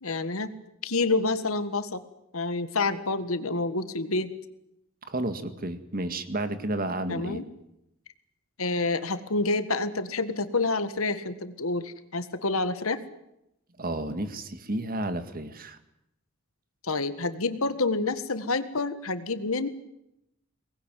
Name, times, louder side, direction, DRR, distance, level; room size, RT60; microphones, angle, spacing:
voice 1, 0.0-0.5 0.8-2.0 2.3-4.3 7.1-7.4 8.6-13.0 16.8-19.7, left 3 dB, 75° left, 11 dB, 1.7 m, -28 dB
voice 2, 5.1-7.4 13.8-15.8, right 1 dB, 45° right, 10 dB, 2.0 m, -31 dB
23.5 x 20.0 x 9.4 m, 0.84 s
head